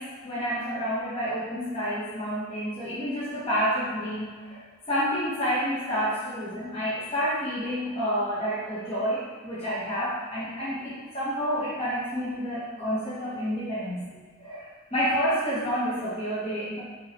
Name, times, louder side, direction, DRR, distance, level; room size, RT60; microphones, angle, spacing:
voice 1, 0.0-4.6 4.9-14.1 14.4-16.8, equal, 25° left, -12 dB, 1.1 m, -29 dB
5.5 x 3.1 x 3.0 m, 1.5 s
head